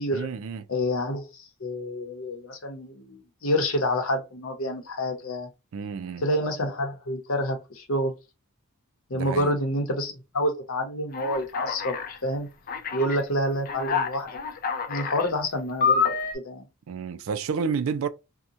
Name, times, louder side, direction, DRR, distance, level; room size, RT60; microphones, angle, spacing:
voice 1, 0.1-0.7 5.7-6.2 9.1-9.5 16.9-18.1, right 6 dB, 70° right, 0.4 m, -30 dB
voice 2, 0.7-5.5 6.2-8.1 9.1-11.9 12.2-12.5 12.9-14.3 14.9-16.7, left 1 dB, 70° left, 0.8 m, -28 dB
Alarm, 11.1-12.2 12.7-13.2 13.7-15.3 15.8-16.3, left 6 dB, 40° left, 0.5 m, -27 dB
2.8 x 2.2 x 2.5 m
head